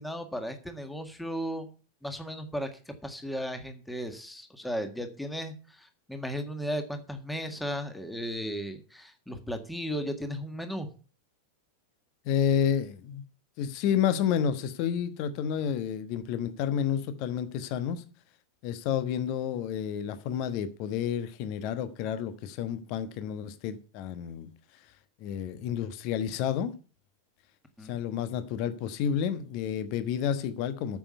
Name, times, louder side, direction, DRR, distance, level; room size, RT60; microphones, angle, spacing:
voice 1, 0.0-1.7 2.0-10.9 27.8-28.0, equal, 5° left, 1.7 m, -35 dB
voice 2, 12.2-13.2 13.6-18.0 18.6-24.5 25.2-26.7 27.8-31.0, left 8 dB, 45° left, 1.2 m, -30 dB
8.9 x 7.2 x 8.2 m
figure-of-eight pair, 90°, 0 cm